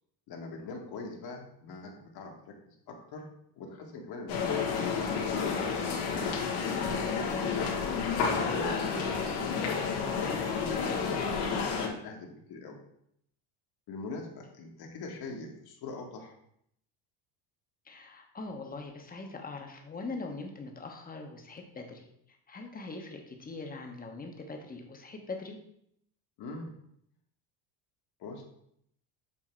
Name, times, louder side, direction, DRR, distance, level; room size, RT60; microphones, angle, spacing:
voice 1, 0.3-2.6 2.9-3.3 3.6-5.1 6.1-6.4 6.8-9.9 10.5-12.8 13.9-16.3 26.4-26.7 28.2-28.4, left 3 dB, 50° left, 2 dB, 1.5 m, -43 dB
sound 1, 4.3-11.9, left 5 dB, 85° left, 1.5 m, -30 dB
voice 2, 17.8-25.6, left 3 dB, 20° left, 3 dB, 1.0 m, -42 dB
7.4 x 2.9 x 4.4 m, 0.72 s
cardioid pair, 115°, 46 cm